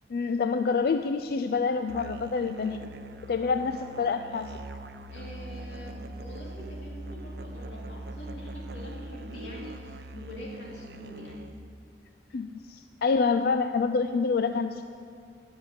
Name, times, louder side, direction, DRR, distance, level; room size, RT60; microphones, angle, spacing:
voice 1, 0.1-2.8 3.3-4.6 12.3-14.8, left 4 dB, 55° left, 8 dB, 0.4 m, -27 dB
Musical instrument, 1.9-11.7, right 1 dB, 60° right, 0.5 m, -41 dB
voice 2, 5.1-11.4, equal, 85° left, -3 dB, 2.6 m, -44 dB
11.5 x 6.5 x 9.6 m, 2.4 s
head